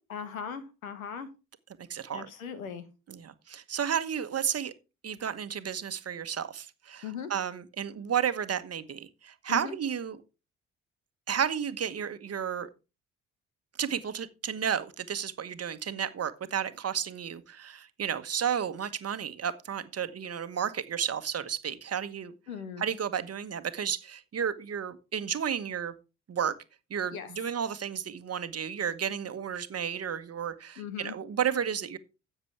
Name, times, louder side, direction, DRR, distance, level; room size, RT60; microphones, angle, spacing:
voice 1, 0.1-1.3 2.1-2.9 7.0-7.3 9.5-9.8 22.5-22.8 27.1-27.3 30.8-31.2, left 7 dB, 85° left, 12 dB, 1.3 m, -38 dB
voice 2, 1.9-2.3 3.1-4.7 5.0-7.0 7.3-10.2 11.3-12.7 13.8-22.3 22.8-25.9 26.3-26.5 26.9-32.0, right 8 dB, 35° right, 11 dB, 1.2 m, -32 dB
13.0 x 8.1 x 3.4 m, 0.30 s
figure-of-eight pair, 45°, 40 cm